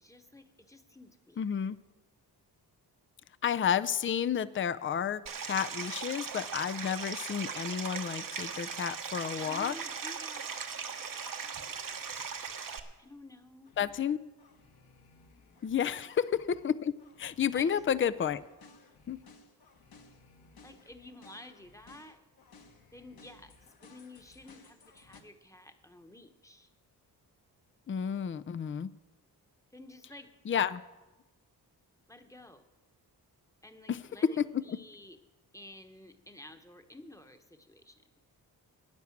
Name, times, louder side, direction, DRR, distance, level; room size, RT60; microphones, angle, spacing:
voice 1, 0.0-1.5 9.4-10.6 13.0-14.0 15.8-16.1 17.4-17.8 20.6-22.2 22.9-23.5 23.8-26.7 29.7-30.3 32.1-32.6 33.6-35.2 35.5-38.0, left 1 dB, 10° left, 7 dB, 1.1 m, -51 dB
voice 2, 1.4-1.8 3.4-9.7 13.8-14.2 15.6-16.9 17.2-18.4 19.1-19.2 27.9-28.9 30.5-30.8 33.9-34.0 34.4-34.8, left 8 dB, 30° left, 14 dB, 0.5 m, -31 dB
Stream, 5.3-12.8, right 6 dB, 55° right, 1.1 m, -39 dB
sound 1, 13.6-14.1 14.4-16.7 17.0-25.2, left 4 dB, 65° left, 1.7 m, -59 dB
10.5 x 9.6 x 7.3 m, 1.1 s
cardioid pair, 80°, 40 cm